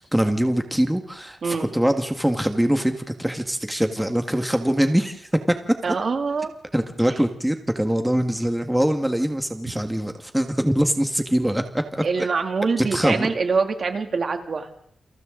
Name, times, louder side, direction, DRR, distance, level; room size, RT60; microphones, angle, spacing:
voice 1, 0.0-5.3 6.7-12.0 12.8-13.3, right 1 dB, 5° right, 6 dB, 1.7 m, -23 dB
voice 2, 5.8-6.5 12.0-14.7, right 4 dB, 55° right, 5 dB, 2.6 m, -24 dB
29.5 x 27.0 x 3.9 m, 0.64 s
wide cardioid pair, 125°, 0 cm